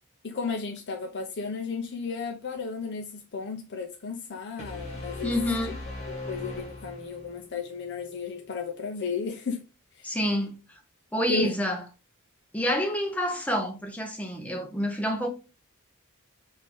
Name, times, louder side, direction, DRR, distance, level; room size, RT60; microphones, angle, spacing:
voice 1, 0.2-5.3 6.1-9.6 10.0-10.2 11.2-11.5, left 4 dB, 55° left, 0.6 m, -34 dB
sound 1, 4.6-7.5, left 2 dB, 30° left, 1.4 m, -38 dB
voice 2, 5.2-5.7 10.0-10.6 11.1-11.8 12.5-15.3, equal, 5° left, 0.8 m, -28 dB
5.2 x 2.7 x 3.4 m
head